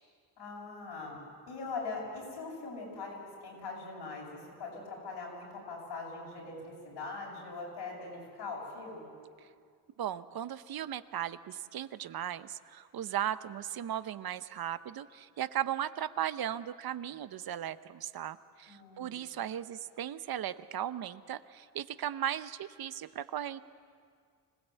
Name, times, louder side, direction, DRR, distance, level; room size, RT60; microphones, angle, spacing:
voice 1, 0.4-9.1 18.7-19.2, left 3 dB, 80° left, -2 dB, 7.5 m, -42 dB
voice 2, 10.0-23.6, right 11 dB, 60° right, 14 dB, 0.8 m, -37 dB
25.5 x 17.0 x 8.1 m, 2.1 s
cardioid pair, 110°, 42 cm